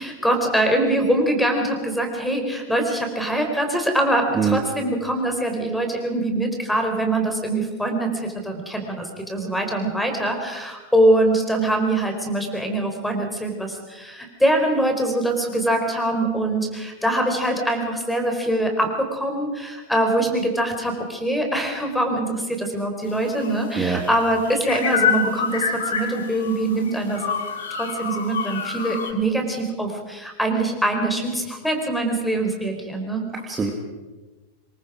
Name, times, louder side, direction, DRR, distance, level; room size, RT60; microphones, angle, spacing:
voice 1, 0.0-27.4 27.7-33.2, right 1 dB, 5° left, 4 dB, 4.5 m, -23 dB
sound 1, 23.0-29.1, left 6 dB, 60° left, 2.5 m, -27 dB
voice 2, 33.3-33.7, right 6 dB, 15° right, 2 dB, 2.4 m, -23 dB
26.0 x 22.5 x 5.1 m, 1.2 s
figure-of-eight pair, 90°, 0 cm